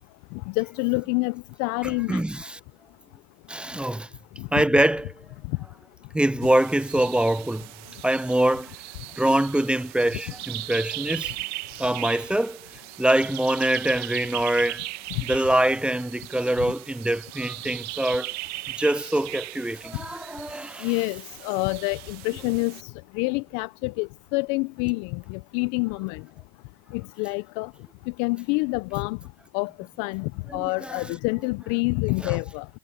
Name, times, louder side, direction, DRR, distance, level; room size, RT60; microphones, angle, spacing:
voice 1, 0.3-2.2 4.4-4.6 20.8-26.2 26.9-27.7 28.2-29.2 29.5-29.7 30.0-32.6, left 27 dB, 65° left, 0.9 m, -27 dB
voice 2, 1.8-2.6 3.5-4.1 4.5-5.2 6.1-7.7 8.0-8.7 9.2-11.3 11.8-12.6 13.0-14.9 15.2-18.3 18.8-20.9 30.5-31.0 32.2-32.4, right 1 dB, 5° right, 0.4 m, -24 dB
sound 1, 6.4-22.8, right 21 dB, 65° right, 2.6 m, -38 dB
hypercardioid pair, 85°, 30 cm